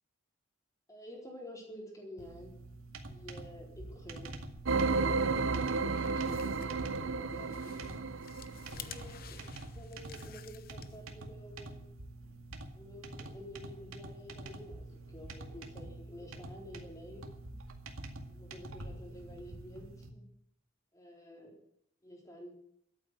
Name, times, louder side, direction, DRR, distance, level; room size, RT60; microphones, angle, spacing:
voice 1, 0.9-2.5 3.1-4.3 5.0-7.9 8.7-9.4 9.7-11.9 12.7-17.2 18.3-20.3 20.9-21.5 22.0-22.5, equal, 15° left, -1 dB, 4.0 m, -50 dB
sound 1, 2.2-20.1, right 2 dB, 90° right, 2.0 m, -47 dB
sound 2, 4.7-9.0, right 4 dB, 70° right, 0.7 m, -32 dB
sound 3, 5.7-11.2, left 8 dB, 45° left, 0.9 m, -52 dB
13.5 x 8.8 x 9.2 m, 0.71 s
head